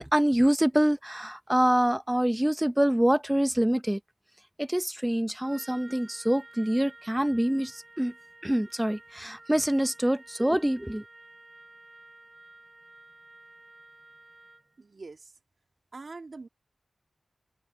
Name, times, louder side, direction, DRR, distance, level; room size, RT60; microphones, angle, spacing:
voice 1, 0.0-4.0 4.6-8.1 8.4-11.0, right 1 dB, 10° right, 0.8 m, -25 dB
Trumpet, 5.4-14.8, right 2 dB, 30° right, 4.5 m, -52 dB
voice 2, 14.8-15.2 15.9-16.5, right 3 dB, 55° right, 2.5 m, -43 dB
wide cardioid pair, 70°, 0 cm